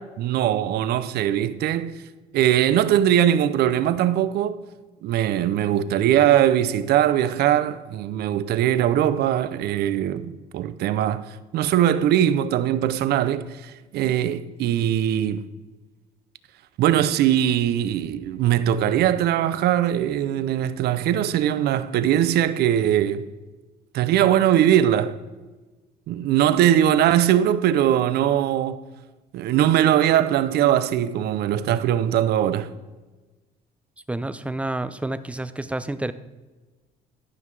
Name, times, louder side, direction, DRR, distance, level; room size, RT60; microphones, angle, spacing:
voice 1, 0.0-2.0 2.3-4.6 5.0-15.5 16.8-23.3 23.9-25.2 26.1-28.8 29.3-32.7, right 11 dB, 70° right, 0.6 m, -21 dB
voice 2, 34.1-36.1, right 2 dB, 5° right, 0.4 m, -29 dB
11.5 x 5.6 x 4.7 m
cardioid pair, 110°, 17 cm